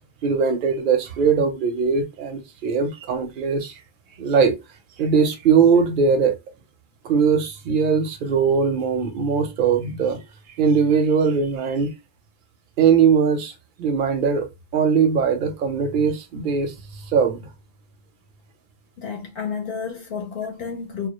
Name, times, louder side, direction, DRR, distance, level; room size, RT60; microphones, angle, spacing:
voice 1, 0.2-3.7 4.2-4.5 5.0-6.4 7.0-10.2 10.6-11.9 12.8-13.5 13.8-14.5 14.7-17.5, right 6 dB, 60° right, 0.6 m, -20 dB
voice 2, 19.0-21.1, left 6 dB, 65° left, 0.7 m, -31 dB
2.1 x 2.1 x 2.8 m
omnidirectional pair, 1.1 m